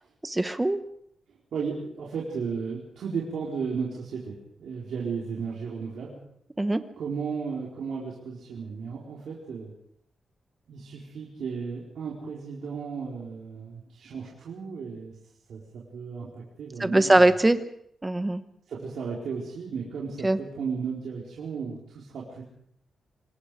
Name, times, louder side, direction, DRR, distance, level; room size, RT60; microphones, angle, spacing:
voice 1, 0.2-0.8 6.6-6.8 16.8-17.6 18.0-18.4 20.2-20.4, right 2 dB, 10° right, 11 dB, 1.0 m, -21 dB
voice 2, 1.3-6.2 7.0-9.7 10.7-15.1 15.5-17.2 18.7-22.4, right 5 dB, 75° right, -5 dB, 4.3 m, -34 dB
26.5 x 20.0 x 5.0 m, 0.70 s
wide cardioid pair, 175°, 0 cm